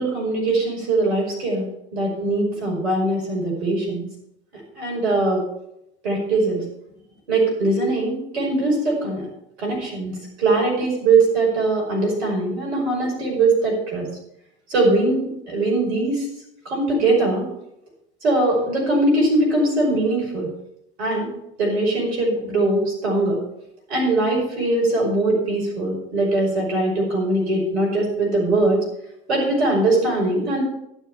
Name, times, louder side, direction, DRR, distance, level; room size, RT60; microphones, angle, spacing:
voice 1, 0.0-1.6 1.9-4.1 4.8-5.4 6.0-6.6 7.3-9.3 9.6-10.1 10.4-14.1 14.7-16.2 16.7-17.5 18.2-20.5 21.0-21.3 21.6-23.4 23.9-28.8 29.3-30.6, right 2 dB, 80° right, -2 dB, 5.6 m, -21 dB
12.0 x 7.4 x 6.8 m, 0.81 s
hypercardioid pair, 70°, 32 cm